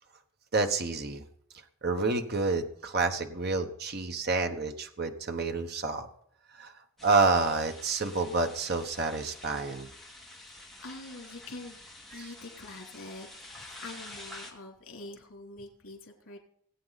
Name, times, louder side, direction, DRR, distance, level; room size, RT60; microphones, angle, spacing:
voice 1, 0.5-1.2 1.8-6.1 6.6-6.7 7.0-9.9 12.1-12.3, right 3 dB, 50° right, 6 dB, 1.2 m, -28 dB
sound 1, 7.0-14.5, left 1 dB, ahead, 2.1 m, -48 dB
voice 2, 10.8-11.8 12.1-16.4, left 2 dB, 80° left, 1 dB, 3.2 m, -45 dB
19.0 x 8.6 x 4.1 m, 0.68 s
head